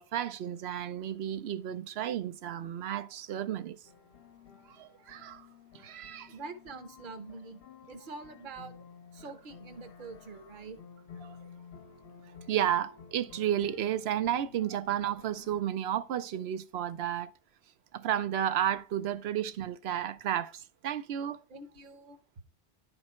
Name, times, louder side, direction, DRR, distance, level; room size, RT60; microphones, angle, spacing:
voice 1, 0.0-3.8 4.7-5.5 5.7-6.3 11.2-11.4 12.5-17.3 17.9-21.4, right 10 dB, 75° right, 0.9 m, -32 dB
sound 1, 3.8-15.6, left 7 dB, 65° left, 0.9 m, -53 dB
voice 2, 6.3-8.8 9.1-10.8 21.5-22.2, right 4 dB, 50° right, 1.1 m, -45 dB
10.5 x 4.4 x 4.3 m
omnidirectional pair, 1.1 m